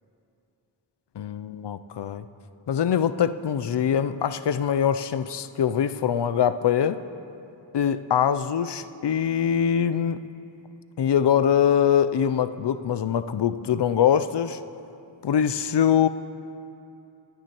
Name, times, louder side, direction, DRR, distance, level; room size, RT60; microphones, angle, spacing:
voice 1, 1.2-2.2 2.7-7.0 7.7-10.3 11.0-14.6 15.2-16.1, left 8 dB, 65° left, 12 dB, 0.5 m, -23 dB
19.5 x 9.3 x 3.0 m, 2.8 s
wide cardioid pair, 45°, 46 cm